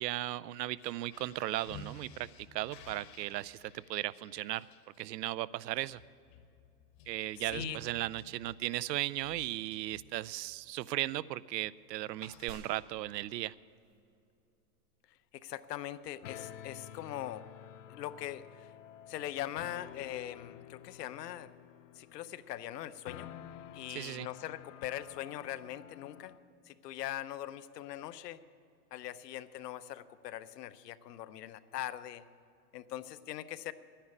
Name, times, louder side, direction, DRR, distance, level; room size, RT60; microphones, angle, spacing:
voice 1, 0.0-4.7 5.0-6.0 7.1-13.5 23.9-24.3, right 15 dB, 90° right, 20 dB, 0.6 m, -36 dB
sound 1, 0.7-10.6 11.0-11.3 11.5-13.1, left 3 dB, 30° left, 0.9 m, -53 dB
voice 2, 7.4-7.8 15.3-17.4 17.9-18.7 19.1-21.5 22.0-23.3 23.7-26.4 26.7-28.4 28.9-32.2 32.7-33.7, left 12 dB, 80° left, 13 dB, 0.8 m, -41 dB
sound 2, 12.5-14.2 14.7-14.8, right 6 dB, 50° right, 0.8 m, -55 dB
sound 3, 16.2-26.4, left 10 dB, 55° left, 0.5 m, -51 dB
11.0 x 10.0 x 8.7 m, 2.5 s
supercardioid pair, 175°, 48 cm